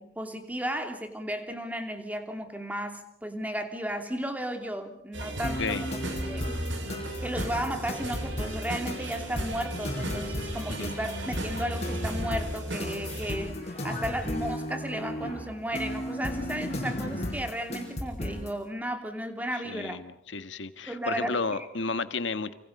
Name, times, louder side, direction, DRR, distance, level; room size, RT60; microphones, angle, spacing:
voice 1, 0.0-6.5 7.2-20.1 20.9-21.7, equal, 10° right, 5 dB, 2.8 m, -34 dB
sound 1, 5.1-13.4, right 1 dB, 75° right, 5.4 m, -35 dB
sound 2, 5.4-18.6, equal, 35° left, 6.3 m, -35 dB
voice 2, 19.6-22.5, left 4 dB, 75° left, 11 dB, 1.6 m, -32 dB
29.5 x 25.5 x 5.4 m, 0.76 s
head